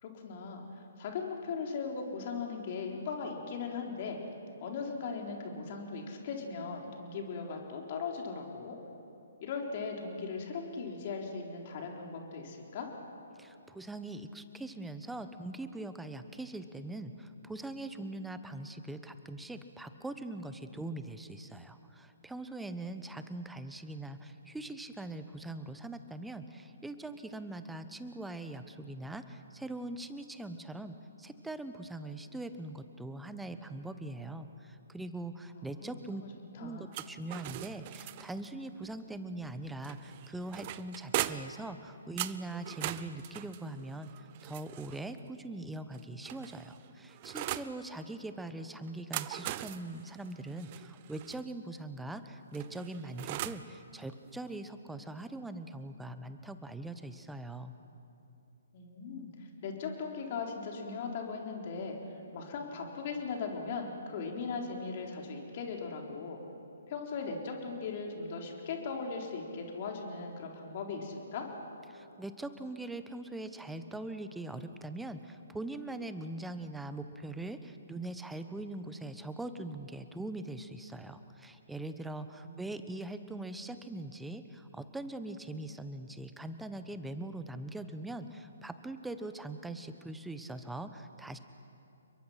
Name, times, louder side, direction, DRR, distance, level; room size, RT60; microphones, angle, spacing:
voice 1, 0.0-4.2 4.6-8.8 9.4-12.9 35.5-35.9 36.2-36.3 36.6-36.9 58.7-62.0 62.3-66.4 66.9-71.5 82.4-82.9, left 5 dB, 40° left, 1 dB, 4.1 m, -39 dB
voice 2, 13.4-36.2 36.6-57.7 71.9-91.4, right 2 dB, 5° right, 10 dB, 1.1 m, -42 dB
sound 1, 36.9-38.5 39.8-41.6 42.2-45.1 45.9-47.7 48.9-51.4 52.5-53.7, right 15 dB, 35° right, 0.7 m, -40 dB
29.5 x 23.0 x 5.9 m, 2.7 s
figure-of-eight pair, 130°, 0 cm